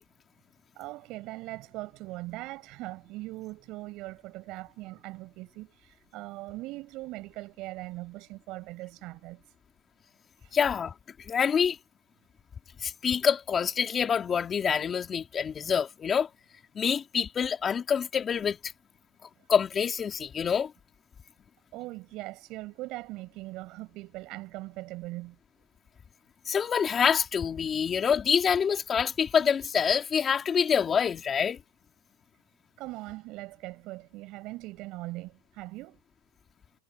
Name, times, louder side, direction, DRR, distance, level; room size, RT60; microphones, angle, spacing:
voice 1, 0.8-9.4 10.4-10.5 19.4-19.5 21.7-25.4 32.8-36.0, right 20 dB, 50° right, 7.3 m, -40 dB
voice 2, 10.5-10.9 11.3-11.8 12.8-16.3 16.7-18.7 19.5-20.7 26.4-31.6, left 7 dB, 25° left, 3.0 m, -26 dB
supercardioid pair, 125°, 0 cm